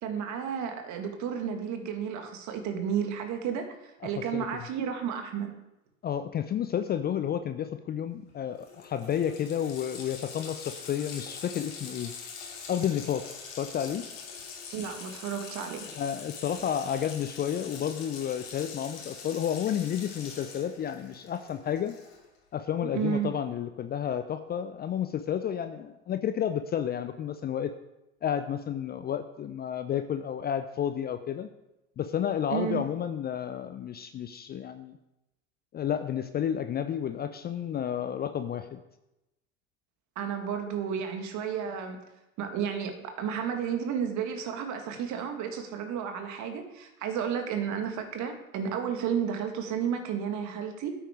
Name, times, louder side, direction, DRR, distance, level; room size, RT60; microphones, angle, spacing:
voice 1, 0.0-5.5 14.7-15.8 22.9-23.3 32.5-32.8 40.2-42.0 42.4-50.9, right 7 dB, 45° right, 5 dB, 2.0 m, -32 dB
voice 2, 6.0-12.1 12.7-13.2 13.6-14.0 15.9-21.9 22.5-27.7 28.2-31.5 32.0-35.0 35.7-38.8, left 9 dB, 25° left, 10 dB, 0.6 m, -31 dB
Water tap faucet, 8.3-8.4 8.6-22.4, left 5 dB, 65° left, 2.7 m, -44 dB
9.1 x 9.0 x 4.9 m, 0.93 s
figure-of-eight pair, 75°, 41 cm